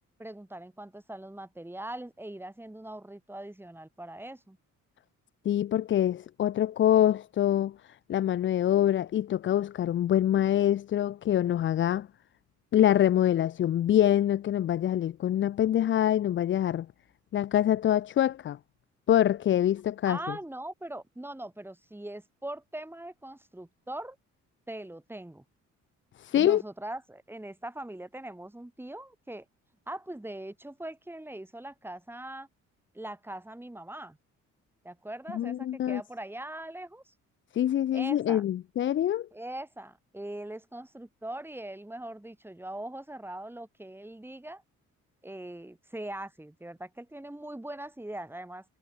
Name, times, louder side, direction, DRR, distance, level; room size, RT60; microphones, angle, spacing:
voice 1, 0.2-4.6 20.0-24.2 24.7-25.4 26.3-29.4 29.9-32.5 32.9-34.2 34.8-37.1 37.9-38.5 39.3-44.6 45.2-48.6, right 1 dB, 5° right, 6.0 m, -41 dB
voice 2, 5.5-12.1 12.7-16.9 17.3-18.6 19.1-20.4 26.2-26.6 35.3-36.0 37.5-39.3, left 11 dB, 40° left, 0.4 m, -25 dB
cardioid pair, 90°, 30 cm